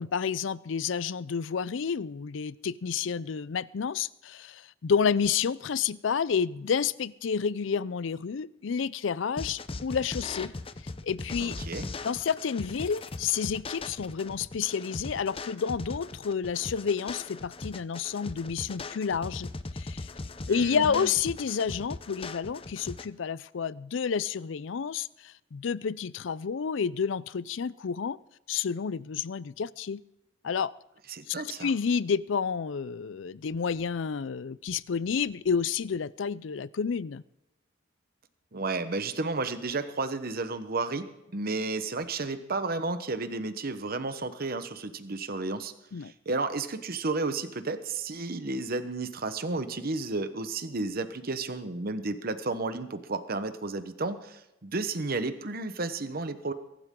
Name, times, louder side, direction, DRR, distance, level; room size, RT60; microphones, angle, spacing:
voice 1, 0.0-10.5 11.0-11.6 12.0-20.1 20.5-28.2 28.5-30.0 30.4-30.7 31.3-37.2 45.9-46.1, left 6 dB, 75° left, 20 dB, 0.5 m, -30 dB
sound 1, 9.4-23.1, left 3 dB, 30° left, 0.6 m, -39 dB
voice 2, 11.4-11.8 20.5-21.1 31.1-31.7 38.5-41.1 41.3-45.7 46.0-56.5, right 3 dB, 50° right, 10 dB, 1.0 m, -32 dB
23.0 x 12.5 x 3.8 m, 0.90 s
head